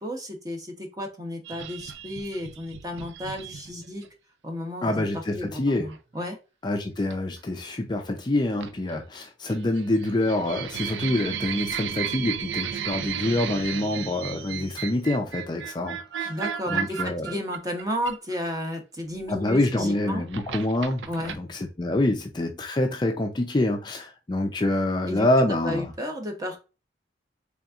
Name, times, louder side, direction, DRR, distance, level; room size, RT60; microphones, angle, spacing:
voice 1, 0.0-4.0 4.4-5.0 5.4-6.4 16.2-20.2 21.1-21.4 25.1-25.3 25.6-26.6, equal, 20° right, 0.9 m, -33 dB
sound 1, 1.5-4.1 5.7-6.0 7.1-7.4 8.6-9.2 9.5-18.6 19.6-21.3, right 8 dB, 85° right, 0.5 m, -34 dB
voice 2, 4.8-5.9 6.6-16.3 16.7-17.4 19.3-25.9, left 1 dB, 25° left, 0.4 m, -26 dB
4.1 x 3.5 x 2.4 m
head